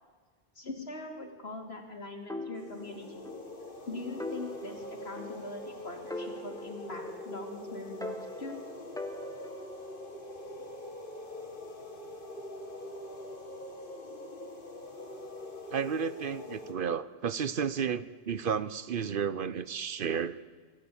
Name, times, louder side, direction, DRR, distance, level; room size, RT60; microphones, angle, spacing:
voice 1, 0.5-3.3 3.9-8.6, left 2 dB, 90° left, 3 dB, 3.2 m, -42 dB
sound 1, 2.3-3.5 3.8-3.9 4.2-5.7 6.1-7.6 8.0-9.8, left 1 dB, 5° left, 1.4 m, -42 dB
sound 2, 2.5-16.7, left 1 dB, 60° left, 2.4 m, -44 dB
voice 2, 15.7-20.4, right 7 dB, 60° right, 16 dB, 0.9 m, -32 dB
24.5 x 14.0 x 8.7 m, 1.5 s
omnidirectional pair, 1.0 m